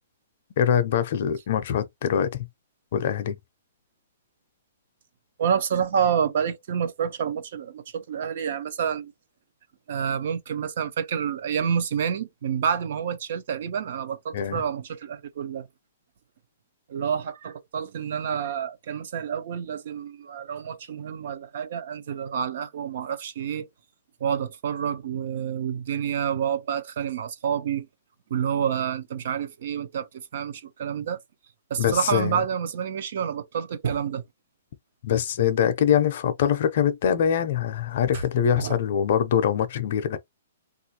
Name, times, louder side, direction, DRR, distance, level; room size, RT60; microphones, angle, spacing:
voice 1, 0.6-2.5 2.9-3.4 14.3-14.6 31.8-32.4 35.0-40.2, left 9 dB, 40° left, 0.5 m, -23 dB
voice 2, 5.4-9.1 9.9-15.7 16.9-23.7 24.2-27.9 28.3-31.2 31.7-34.2 38.6-38.8, right 8 dB, 45° right, 0.5 m, -28 dB
3.5 x 2.4 x 2.8 m
hypercardioid pair, 175°, 0 cm